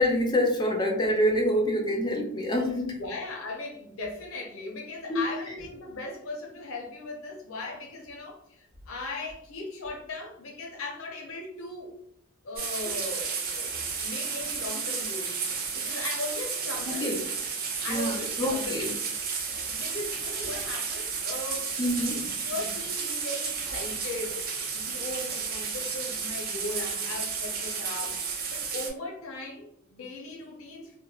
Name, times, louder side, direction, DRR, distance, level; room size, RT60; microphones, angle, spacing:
voice 1, 0.0-3.0 5.1-5.6 16.9-17.2 17.9-18.9 19.4-19.5 21.8-22.5, left 1 dB, 20° left, 1 dB, 0.4 m, -27 dB
voice 2, 3.0-11.9 12.4-17.2 17.8-18.9 19.5-21.7 22.5-31.0, left 2 dB, 80° left, 0 dB, 0.6 m, -38 dB
sound 1, 12.6-28.9, right 5 dB, 45° right, 0.5 m, -32 dB
3.0 x 2.1 x 2.3 m, 0.72 s
head